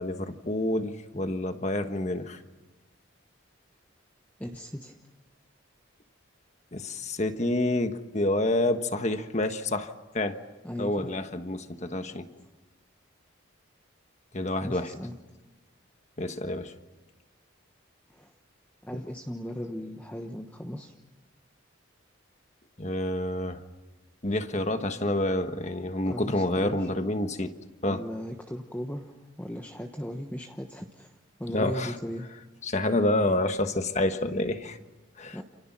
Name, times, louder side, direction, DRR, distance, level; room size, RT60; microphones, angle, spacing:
voice 1, 0.0-2.4 6.7-10.4 10.8-12.3 14.3-14.9 16.2-16.7 18.9-19.0 22.8-23.6 24.2-27.6 27.8-28.0 31.5-32.0 32.6-34.8 35.2-35.4, left 1 dB, 35° left, 1.4 m, -28 dB
voice 2, 4.4-4.9 10.6-11.1 12.4-12.5 14.6-15.2 18.1-18.3 18.8-20.9 26.0-26.9 27.8-32.3 35.3-35.4, equal, 10° left, 1.2 m, -37 dB
29.5 x 28.5 x 6.1 m
head